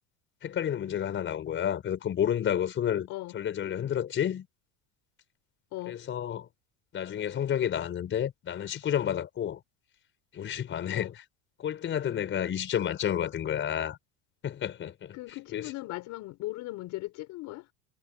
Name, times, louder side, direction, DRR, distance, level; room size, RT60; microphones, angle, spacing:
voice 1, 0.4-3.1 3.3-4.5 5.9-6.5 6.9-9.6 10.3-11.1 11.6-14.0 14.4-15.2 15.5-15.7, left 9 dB, 35° left, 5.1 m, -30 dB
voice 2, 15.1-17.7, left 18 dB, 60° left, 6.1 m, -38 dB
cardioid pair, 135°, 34 cm